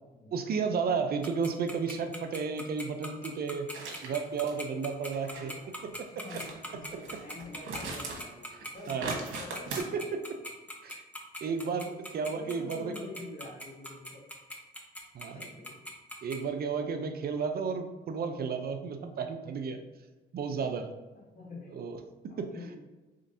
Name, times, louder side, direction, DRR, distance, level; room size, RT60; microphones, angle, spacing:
voice 1, 0.3-3.7 4.0-5.5 8.9-9.1 9.9-10.2 10.8-11.0 11.4-12.9 15.1-15.5 16.2-19.8 20.3-20.9 21.7-22.0 22.4-22.5, right 5 dB, 50° right, 7 dB, 0.5 m, -32 dB
Tick-tock, 1.2-16.4, equal, 5° left, 0.7 m, -40 dB
sound 1, 3.7-4.1 4.5-4.6 5.1-5.5 6.2-6.5 6.9-8.3 8.6-9.8, right 3 dB, 75° right, 1.0 m, -39 dB
voice 2, 5.2-5.9 6.2-10.0 11.6-12.0 12.3-14.2 15.2-15.8 21.3-21.8 22.3-22.8, left 2 dB, 45° left, -4 dB, 1.4 m, -47 dB
3.8 x 3.3 x 2.7 m, 1.2 s
cardioid pair, 90°, 20 cm